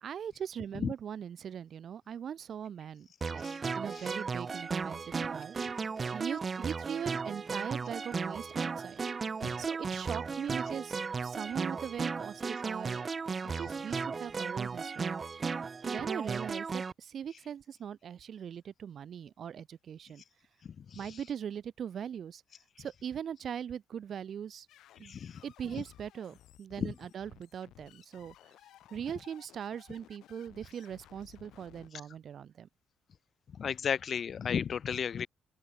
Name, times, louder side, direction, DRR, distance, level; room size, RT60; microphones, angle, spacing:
voice 1, 0.0-3.5 3.7-9.0 9.6-13.1 13.6-15.2 15.8-20.2 20.9-22.4 22.8-24.7 25.0-25.2 25.4-28.5 28.9-32.7, right 8 dB, 60° right, 3.6 m, -40 dB
sound 1, 3.2-16.9, right 5 dB, 35° right, 1.8 m, -35 dB
voice 2, 20.6-21.2 25.0-25.4 26.8-26.9 33.5-35.3, left 7 dB, 50° left, 0.5 m, -34 dB
sound 2, 24.7-31.9, left 13 dB, 80° left, 5.2 m, -58 dB
open air
cardioid pair, 90°, 0 cm